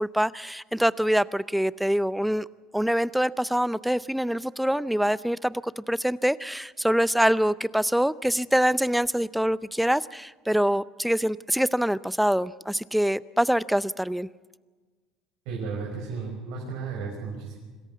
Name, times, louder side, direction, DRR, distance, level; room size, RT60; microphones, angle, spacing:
voice 1, 0.0-2.5 2.7-14.3, equal, ahead, 18 dB, 0.5 m, -25 dB
voice 2, 15.4-17.6, right 5 dB, 75° right, -2 dB, 5.6 m, -34 dB
26.5 x 14.0 x 8.5 m, 1.4 s
supercardioid pair, 85°, 0 cm